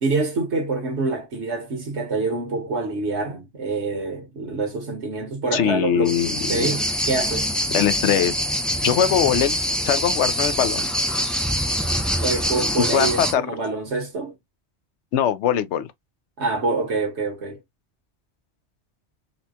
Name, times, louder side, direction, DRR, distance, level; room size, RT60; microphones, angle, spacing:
voice 1, 0.0-7.5 12.2-14.3 16.4-17.6, right 3 dB, 75° right, 1.6 m, -26 dB
voice 2, 5.5-6.7 7.7-8.3 8.8-9.6 9.8-10.9 12.9-13.4 15.1-15.9, left 9 dB, 85° left, 0.9 m, -21 dB
sound 1, 6.1-13.3, equal, ahead, 0.3 m, -24 dB
4.2 x 2.2 x 2.7 m
omnidirectional pair, 1.2 m